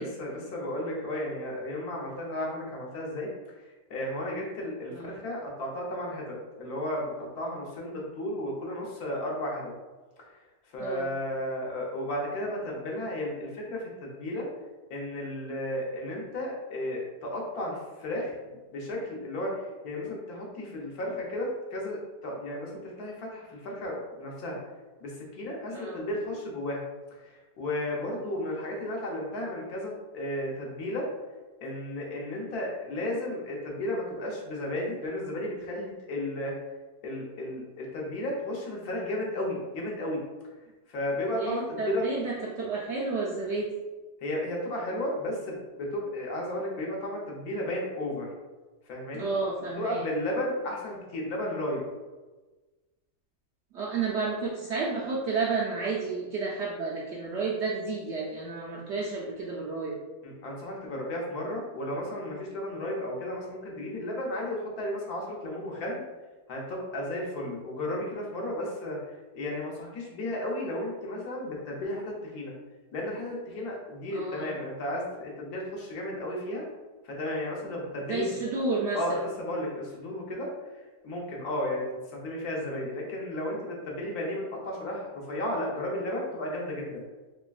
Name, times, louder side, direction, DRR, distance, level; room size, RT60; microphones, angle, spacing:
voice 1, 0.0-3.3 3.9-9.7 10.7-14.5 14.9-18.3 18.7-24.6 25.0-26.8 27.3-31.1 31.6-36.5 37.0-40.2 40.9-42.1 44.2-48.3 48.9-49.3 49.8-51.8 60.2-66.0 66.5-69.0 69.3-72.5 72.9-76.6 77.0-78.3 78.9-80.5 81.0-81.8 82.1-87.0, left 1 dB, 75° left, -2 dB, 1.3 m, -33 dB
voice 2, 10.8-11.1 25.7-26.1 41.3-43.7 49.1-50.1 53.7-60.0 74.1-74.6 78.1-79.2, right 4 dB, 70° right, -4 dB, 0.6 m, -31 dB
3.5 x 3.2 x 2.3 m, 1.2 s
omnidirectional pair, 1.6 m